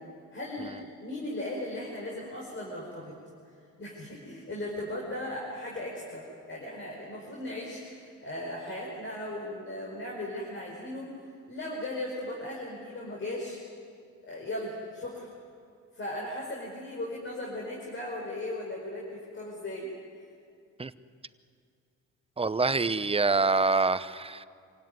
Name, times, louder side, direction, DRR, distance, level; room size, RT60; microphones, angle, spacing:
voice 1, 0.3-0.7 1.0-3.1 3.8-13.6 14.2-15.3 16.0-19.9, left 1 dB, 40° left, -2 dB, 5.3 m, -37 dB
voice 2, 22.4-24.4, right 3 dB, 20° right, 14 dB, 0.8 m, -25 dB
27.0 x 17.0 x 9.6 m, 2.3 s
cardioid pair, 90°, 30 cm